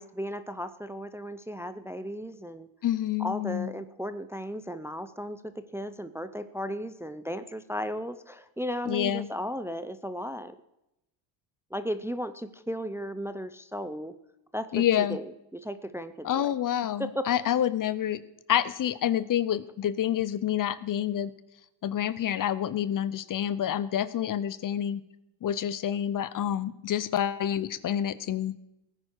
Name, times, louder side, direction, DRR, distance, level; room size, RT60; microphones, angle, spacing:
voice 1, 0.0-2.7 3.2-10.6 11.7-14.1 14.5-16.5 17.0-17.6, equal, 5° right, 11 dB, 0.6 m, -35 dB
voice 2, 2.8-3.7 8.9-9.3 14.7-15.2 16.2-18.2 18.5-21.3 21.8-25.0 25.4-28.5, left 10 dB, 40° left, 17 dB, 0.7 m, -28 dB
17.0 x 9.9 x 4.6 m, 0.88 s
cardioid pair, 100°, 49 cm